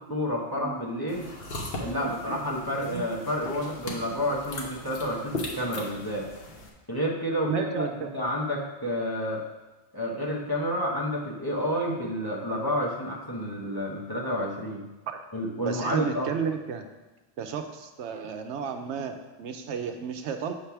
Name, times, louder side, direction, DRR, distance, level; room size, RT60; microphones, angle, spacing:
voice 1, 0.1-1.2 1.8-6.3 6.9-9.4 9.9-14.9 15.3-16.3, equal, 20° left, -4 dB, 1.0 m, -30 dB
voice 2, 0.6-1.1 2.0-2.1 2.9-3.0 7.5-8.1 15.1-15.2 15.7-16.8 17.4-20.5, right 7 dB, 85° right, 6 dB, 0.9 m, -32 dB
sound 1, 1.1-6.7, left 1 dB, 60° left, 1.2 m, -38 dB
7.5 x 3.3 x 5.8 m, 1.1 s
omnidirectional pair, 1.2 m